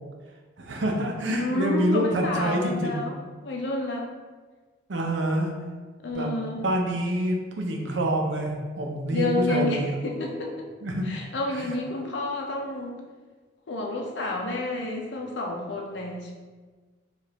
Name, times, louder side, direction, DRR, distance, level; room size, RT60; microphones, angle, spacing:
voice 1, 0.6-3.0 4.9-5.5 6.1-6.3 6.6-10.0 10.8-11.1 11.6-11.7, right 1 dB, 85° right, 2 dB, 0.6 m, -27 dB
voice 2, 1.3-3.1 3.4-4.1 6.0-6.6 9.1-10.7 11.0-13.0 13.7-16.3, left 2 dB, 75° left, 1 dB, 0.6 m, -30 dB
4.9 x 2.5 x 2.9 m, 1.4 s
head